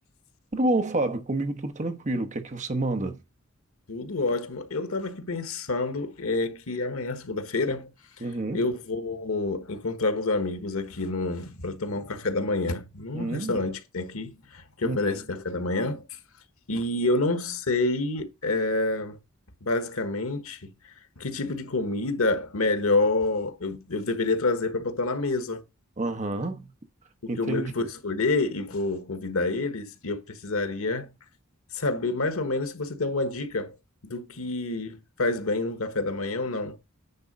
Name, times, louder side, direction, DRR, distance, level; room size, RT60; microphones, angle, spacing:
voice 1, 0.5-3.2 8.2-8.7 13.1-13.6 14.8-15.0 26.0-26.7 27.3-27.9, right 2 dB, 35° right, 1.0 m, -28 dB
voice 2, 3.9-7.9 8.2-8.3 8.5-16.0 16.7-19.2 19.6-20.7 21.2-25.6 27.2-31.1 31.7-33.7 34.0-36.8, left 2 dB, 90° left, 1.3 m, -28 dB
9.6 x 3.7 x 5.3 m
head